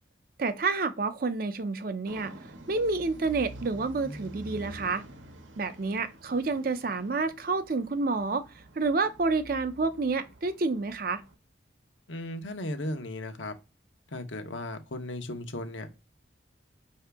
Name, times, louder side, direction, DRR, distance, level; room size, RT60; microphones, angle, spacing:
voice 1, 0.4-2.3 2.7-5.0 5.6-8.4 8.8-11.2, right 3 dB, 50° right, 0.5 m, -29 dB
sound 1, 2.1-11.3, right 1 dB, 80° right, 0.8 m, -47 dB
voice 2, 12.1-13.5 14.1-15.9, left 1 dB, 80° left, 0.8 m, -36 dB
5.7 x 2.7 x 3.4 m
head